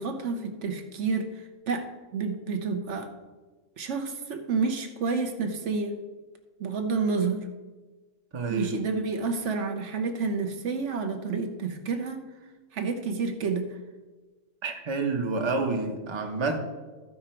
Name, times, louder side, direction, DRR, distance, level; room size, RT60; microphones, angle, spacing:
voice 1, 0.0-3.1 3.8-6.0 6.6-7.5 8.5-12.2 12.7-13.7, right 4 dB, 60° right, 5 dB, 1.1 m, -29 dB
voice 2, 8.3-8.7 14.6-16.6, right 3 dB, 25° right, 4 dB, 0.8 m, -28 dB
14.0 x 5.0 x 4.4 m, 1.3 s
omnidirectional pair, 1.5 m